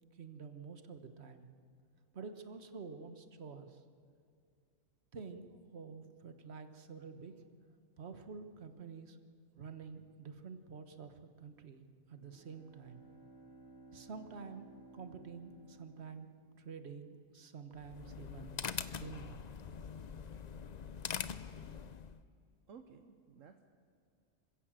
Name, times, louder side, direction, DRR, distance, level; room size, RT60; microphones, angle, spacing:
voice 1, 0.2-1.5 2.1-3.8 5.1-7.3 8.0-9.2 9.5-11.8 12.1-13.0 13.9-14.7 14.9-16.3 16.6-18.6 19.0-19.4, right 5 dB, 50° right, 9 dB, 1.5 m, -49 dB
Bowed string instrument, 12.1-16.9, right 2 dB, 5° right, 3.4 m, -58 dB
sound 1, 17.7-22.2, left 7 dB, 45° left, 0.6 m, -43 dB
voice 2, 22.7-23.6, right 6 dB, 70° right, 6 dB, 1.3 m, -56 dB
26.0 x 16.0 x 7.6 m, 2.4 s
omnidirectional pair, 1.4 m